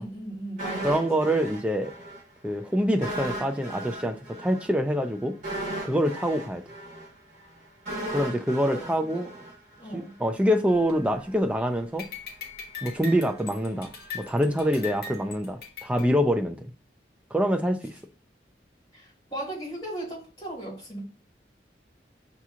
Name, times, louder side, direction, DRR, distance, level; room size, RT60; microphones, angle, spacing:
voice 1, 0.0-1.3 9.1-9.2 9.8-10.1 18.9-21.0, right 1 dB, 25° left, 2.3 m, -37 dB
sound 1, 0.6-2.2 2.5-2.6 3.0-10.1 10.4-10.5, right 1 dB, 45° right, 1.4 m, -36 dB
voice 2, 0.8-1.9 2.4-5.3 5.8-6.6 8.1-9.3 9.9-12.1 12.8-16.7 17.3-17.9, equal, 5° right, 0.4 m, -25 dB
sound 2, 10.7-11.6 12.0-16.0, left 5 dB, 55° left, 0.9 m, -41 dB
6.0 x 2.9 x 2.4 m
head